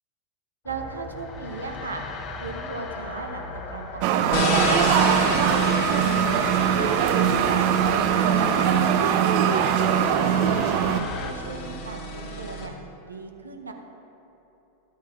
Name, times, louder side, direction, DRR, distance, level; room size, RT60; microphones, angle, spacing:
sound 1, 0.6-11.3, left 3 dB, 30° left, 0.7 m, -38 dB
voice 1, 0.6-2.0 2.4-5.3 5.8-7.8 8.1-9.6 10.0-12.7 13.1-13.7, right 3 dB, 75° right, 4 dB, 0.8 m, -37 dB
sound 2, 4.0-11.0, right 8 dB, 45° right, 0.5 m, -21 dB
sound 3, 4.3-12.7, left 2 dB, 50° left, 1.3 m, -31 dB
13.5 x 8.2 x 2.5 m, 3.0 s
figure-of-eight pair, 90°, 0 cm